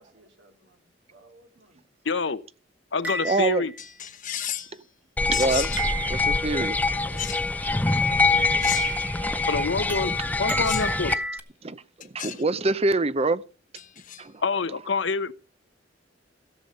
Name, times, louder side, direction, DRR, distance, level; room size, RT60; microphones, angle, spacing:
voice 1, 0.0-1.8 6.8-7.3, right 2 dB, 70° right, 2.9 m, -54 dB
voice 2, 2.0-2.4 2.9-3.7 9.5-10.1 10.4-11.1 14.4-15.3, left 4 dB, 75° left, 0.9 m, -26 dB
sound 1, 3.0-3.8 5.8-6.5 8.8-9.4 9.9-11.4, right 3 dB, 10° right, 1.2 m, -33 dB
voice 3, 3.2-3.7 5.3-5.7 6.1-6.8 9.2-9.6 11.6-13.4 14.2-14.3, right 2 dB, 35° right, 0.7 m, -25 dB
sound 2, 3.8-4.8 5.3-5.9 7.2-7.5 8.6-9.1 10.6-11.0 12.0-12.4 13.8-14.2, left 10 dB, 45° left, 1.0 m, -33 dB
sound 3, 5.2-11.1, left 3 dB, 10° left, 0.6 m, -24 dB
16.5 x 7.2 x 5.3 m
head